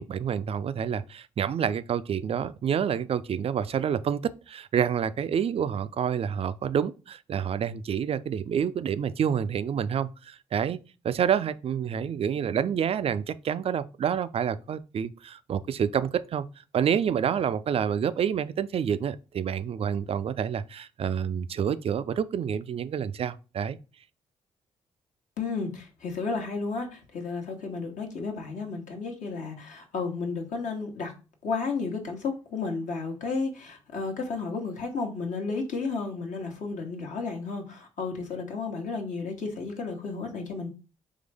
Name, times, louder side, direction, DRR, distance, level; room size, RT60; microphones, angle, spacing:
voice 1, 0.0-10.8 11.0-16.4 16.7-23.8, right 8 dB, 45° right, 0.4 m, -28 dB
voice 2, 25.4-31.1 31.4-40.7, left 4 dB, 60° left, 1.1 m, -32 dB
3.6 x 3.3 x 3.4 m
hypercardioid pair, 45°, 14 cm